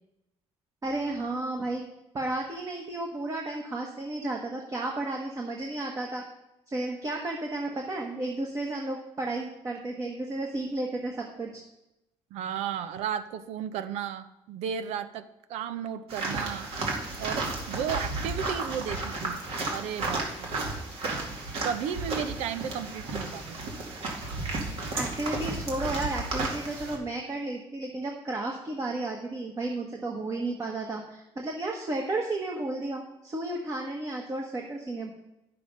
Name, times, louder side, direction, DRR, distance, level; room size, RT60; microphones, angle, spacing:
voice 1, 0.8-1.8 2.1-6.2 6.7-11.6 24.9-35.1, right 2 dB, 30° right, 0 dB, 1.3 m, -33 dB
voice 2, 12.3-15.2 15.5-16.7 17.2-17.4 17.7-19.4 19.7-20.5 21.6-23.7, right 8 dB, 90° right, 12 dB, 0.7 m, -34 dB
sound 1, 16.1-27.0, right 3 dB, 65° right, 2.2 m, -33 dB
10.5 x 6.8 x 5.3 m, 0.88 s
cardioid pair, 120°, 11 cm